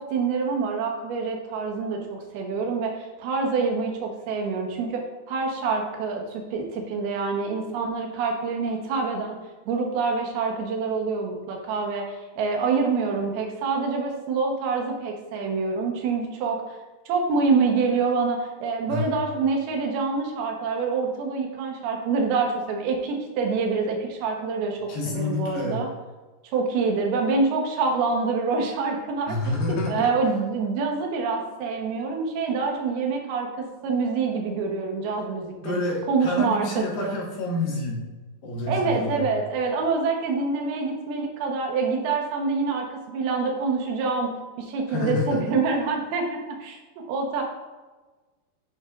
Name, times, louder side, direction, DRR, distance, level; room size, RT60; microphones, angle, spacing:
voice 1, 0.0-2.0 2.3-9.4 9.7-16.6 17.1-25.9 26.5-29.4 29.7-35.8 36.1-37.2 38.7-44.3 44.6-47.4, right 4 dB, 70° right, 2 dB, 2.8 m, -26 dB
voice 2, 24.9-25.8 29.3-30.1 35.6-38.0 38.4-39.2 44.9-45.4, left 2 dB, 70° left, -3 dB, 3.5 m, -28 dB
9.3 x 6.4 x 2.5 m, 1.2 s
omnidirectional pair, 4.9 m